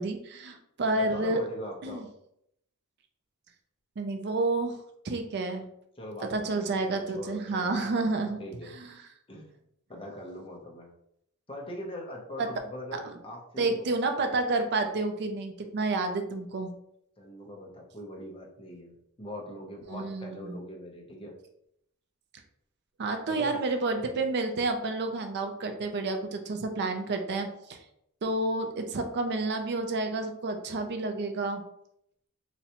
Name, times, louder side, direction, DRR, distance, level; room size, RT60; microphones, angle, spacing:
voice 1, 0.0-1.4 1.8-2.0 4.0-4.8 5.0-5.7 6.2-8.4 8.7-8.9 12.4-12.5 12.9-13.0 13.6-16.7 19.9-20.6 23.0-27.8 28.2-31.6, right 2 dB, 50° right, 6 dB, 0.4 m, -30 dB
voice 2, 0.9-2.1 6.0-8.7 9.3-9.5 9.9-10.9 11.5-13.9 17.2-18.9 19.2-21.3 23.3-23.6, left 1 dB, 25° left, 0 dB, 0.6 m, -42 dB
3.9 x 2.2 x 2.8 m, 0.75 s
head